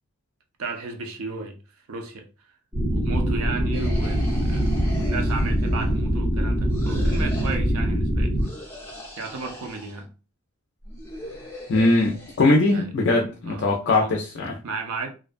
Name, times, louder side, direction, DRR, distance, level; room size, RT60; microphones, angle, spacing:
voice 1, 0.6-1.6 1.9-2.2 2.9-8.3 9.2-10.1 12.7-12.9 13.4-14.1 14.6-15.1, right 3 dB, 70° right, 0.5 m, -34 dB
sound 1, 2.7-8.4, equal, 20° right, 0.8 m, -23 dB
sound 2, 3.7-6.0 6.7-7.6 8.4-10.0 10.8-12.4, left 1 dB, 10° left, 0.8 m, -41 dB
voice 2, 11.7-14.5, left 2 dB, 55° left, 0.4 m, -21 dB
2.4 x 2.2 x 2.4 m
head